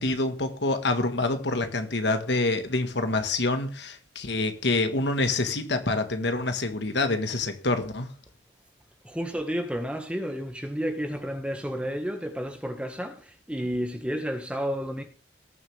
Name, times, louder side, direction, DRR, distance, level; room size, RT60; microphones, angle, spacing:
voice 1, 0.0-8.1, left 2 dB, 70° left, 1.6 m, -26 dB
voice 2, 9.0-15.0, equal, 5° right, 1.5 m, -31 dB
19.0 x 7.2 x 3.5 m
head